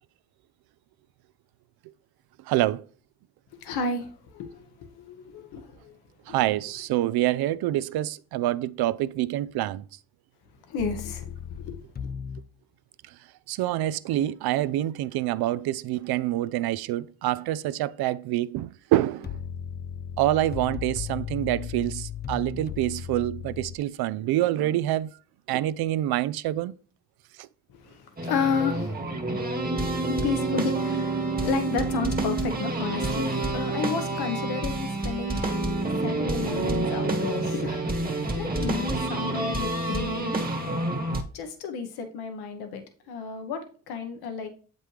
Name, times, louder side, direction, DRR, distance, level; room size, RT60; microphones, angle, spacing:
voice 1, 2.5-2.8 6.3-9.8 13.5-19.4 20.2-25.1 25.5-26.7 27.4-27.5, right 14 dB, 75° right, 0.5 m, -26 dB
voice 2, 3.5-5.9 10.7-11.3 11.6-12.1 27.8-28.9 30.0-35.5 36.0-40.4 41.3-42.8 43.1-44.5, left 5 dB, 80° left, 1.1 m, -32 dB
sound 1, 10.8-12.5 19.2-23.8, left 8 dB, 25° left, 0.3 m, -36 dB
sound 2, 28.2-41.2, right 2 dB, 25° right, 1.3 m, -28 dB
7.6 x 5.2 x 3.2 m
supercardioid pair, 60°, 38 cm